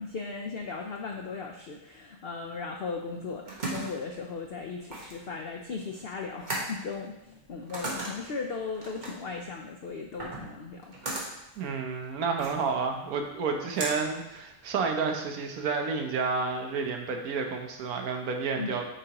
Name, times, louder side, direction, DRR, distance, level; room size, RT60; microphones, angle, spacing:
voice 1, 0.0-11.0 18.6-18.8, left 4 dB, 70° left, 2 dB, 0.5 m, -37 dB
sound 1, 3.1-14.9, right 2 dB, 30° right, 1.4 m, -39 dB
voice 2, 11.6-18.8, right 5 dB, 70° right, 3 dB, 1.2 m, -30 dB
8.3 x 4.9 x 2.9 m, 0.94 s
omnidirectional pair, 1.7 m